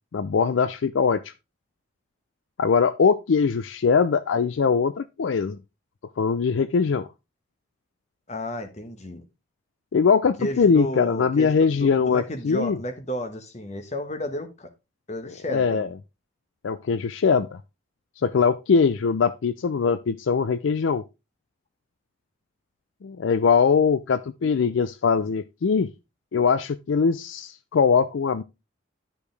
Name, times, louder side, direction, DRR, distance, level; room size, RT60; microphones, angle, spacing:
voice 1, 0.1-1.3 2.6-5.6 6.2-7.1 9.9-12.8 15.5-15.9 16.6-17.6 18.2-21.0 23.0-25.9 26.3-28.4, left 5 dB, 70° left, 0.4 m, -21 dB
voice 2, 8.3-9.2 10.4-14.7 15.1-15.9, equal, 35° left, 1.2 m, -32 dB
11.5 x 5.0 x 3.3 m
head